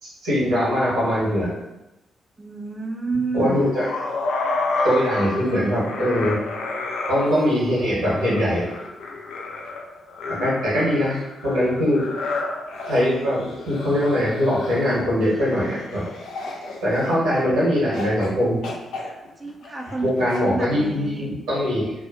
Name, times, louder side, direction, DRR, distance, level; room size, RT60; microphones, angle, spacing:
voice 1, 0.0-1.5 3.3-3.8 4.8-6.4 7.1-8.7 10.3-12.0 12.9-16.0 16.8-18.6 20.0-21.9, equal, 85° right, -9 dB, 1.2 m, -22 dB
voice 2, 2.4-3.6 19.4-20.1 20.4-21.3, right 4 dB, 30° right, 2 dB, 0.5 m, -29 dB
sound 1, 3.4-17.4 17.9-18.3 18.6-20.4, left 3 dB, 70° left, 0.4 m, -31 dB
2.7 x 2.3 x 2.6 m, 0.96 s
hypercardioid pair, 40°, 0 cm